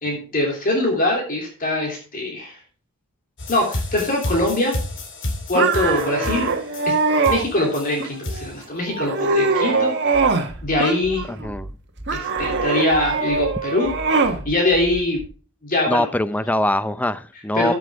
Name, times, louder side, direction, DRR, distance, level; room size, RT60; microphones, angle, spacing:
voice 1, 0.0-2.6 3.5-4.7 5.5-6.5 6.9-7.0 7.3-9.9 10.6-11.2 12.1-13.9 14.4-15.2 15.6-16.1 17.5-17.7, left 1 dB, 40° left, 0 dB, 3.2 m, -22 dB
sound 1, 3.4-8.6, left 1 dB, 55° left, 2.5 m, -30 dB
sound 2, 5.5-7.4 8.0-8.5 8.9-10.5 10.8-11.5 12.1-14.4, right 4 dB, 55° right, 1.6 m, -22 dB
sound 3, 10.1-15.3, right 1 dB, 25° right, 1.6 m, -36 dB
voice 2, 11.3-11.7 15.9-17.7, left 1 dB, 5° left, 14 dB, 0.5 m, -22 dB
14.5 x 7.1 x 3.6 m, 0.38 s
head